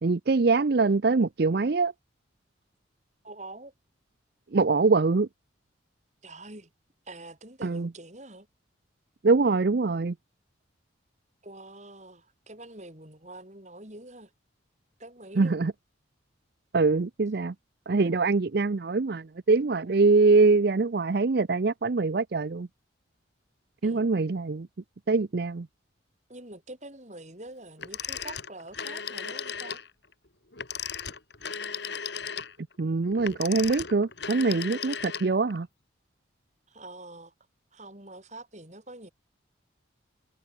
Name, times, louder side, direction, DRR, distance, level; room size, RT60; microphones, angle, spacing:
voice 1, 0.0-1.9 4.5-5.3 7.6-7.9 9.2-10.1 15.4-15.7 16.7-17.5 17.9-22.7 23.8-24.7 25.1-25.7 32.8-35.7, right 3 dB, 55° right, 0.5 m, -23 dB
voice 2, 3.2-3.7 6.2-6.7 7.0-8.5 11.4-14.3 15.0-15.6 18.0-18.2 23.8-24.1 26.3-29.8 36.7-37.3 37.7-39.1, right 2 dB, 35° right, 4.7 m, -45 dB
Telephone, 27.8-29.9 30.5-35.6, left 7 dB, 60° left, 3.0 m, -36 dB
head